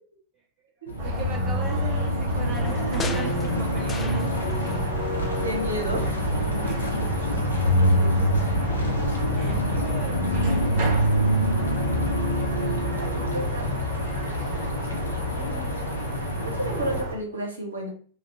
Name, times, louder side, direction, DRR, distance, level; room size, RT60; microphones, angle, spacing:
sound 1, 0.9-17.0, equal, 80° left, 0.6 m, -26 dB
voice 1, 1.0-4.7 6.6-7.3 8.5-8.8 9.3-10.6, right 5 dB, 30° right, 1 dB, 0.6 m, -38 dB
sound 2, 1.0-17.2, right 1 dB, 50° right, 1.2 m, -31 dB
sound 3, 2.3-4.8 5.0-6.1 6.4-6.5, left 5 dB, 20° left, 0.3 m, -38 dB
voice 2, 5.4-6.1 13.0-13.7 15.4-17.9, right 1 dB, 80° right, 0 dB, 0.8 m, -32 dB
2.8 x 2.4 x 3.2 m, 0.43 s
figure-of-eight pair, 90°, 0 cm